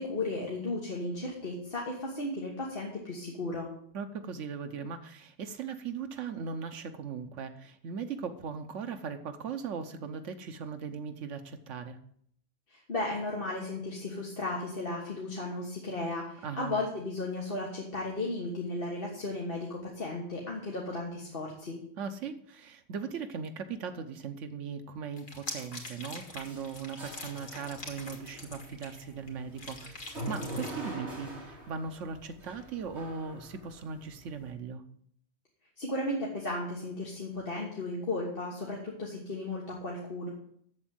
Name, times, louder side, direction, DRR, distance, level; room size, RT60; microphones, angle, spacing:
voice 1, 0.0-3.7 12.7-21.8 35.8-40.3, left 2 dB, 50° left, -3 dB, 1.8 m, -35 dB
voice 2, 3.9-12.0 16.4-16.7 22.0-34.8, right 6 dB, 85° right, 6 dB, 1.2 m, -39 dB
sound 1, 25.2-29.3 29.6-30.7, left 3 dB, 85° left, 2.4 m, -44 dB
sound 2, 26.2-34.5, right 1 dB, 65° right, 3.2 m, -44 dB
7.9 x 7.2 x 7.7 m, 0.67 s
omnidirectional pair, 1.2 m